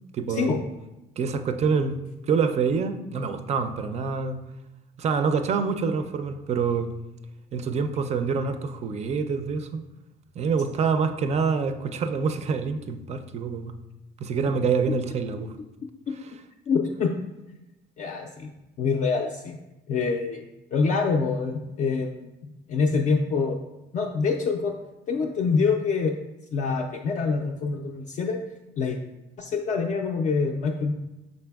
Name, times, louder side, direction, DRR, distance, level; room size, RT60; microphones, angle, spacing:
voice 1, 0.1-0.5 1.2-2.0 2.3-4.4 5.0-6.9 7.5-9.8 10.4-13.7 14.2-15.6, right 5 dB, 40° right, 8 dB, 0.4 m, -26 dB
voice 2, 16.7-17.1 18.0-18.5 18.8-19.6 19.9-20.4 20.7-22.3 22.7-23.6 23.9-24.7 25.1-26.1 26.5-28.4 28.8-29.0 29.4-30.9, left 4 dB, 45° left, 1 dB, 0.4 m, -25 dB
5.0 x 4.0 x 2.3 m, 0.97 s
cardioid pair, 110°, 17 cm